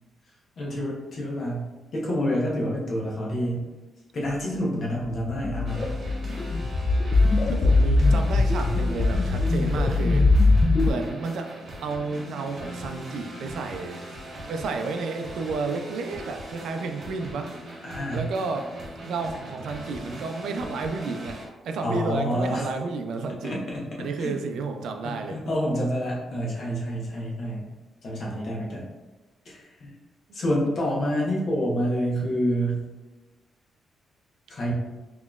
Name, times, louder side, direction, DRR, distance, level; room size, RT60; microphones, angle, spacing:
voice 1, 0.6-3.7 4.1-5.9 17.8-18.3 21.8-22.6 23.4-23.9 24.2-24.3 25.0-27.7 28.0-28.9 29.4-29.9 30.3-32.8 34.5-34.7, equal, 45° left, -4 dB, 1.0 m, -28 dB
sound 1, 5.1-10.9, left 2 dB, 30° left, 0.3 m, -21 dB
sound 2, 5.7-21.5, right 1 dB, 40° right, 0.9 m, -40 dB
voice 2, 7.5-10.3 10.8-14.0 14.5-17.5 18.1-18.7 19.1-23.5 24.0-25.4, right 4 dB, 75° right, 5 dB, 0.4 m, -31 dB
3.9 x 3.0 x 2.4 m, 1.2 s
cardioid pair, 145°, 0 cm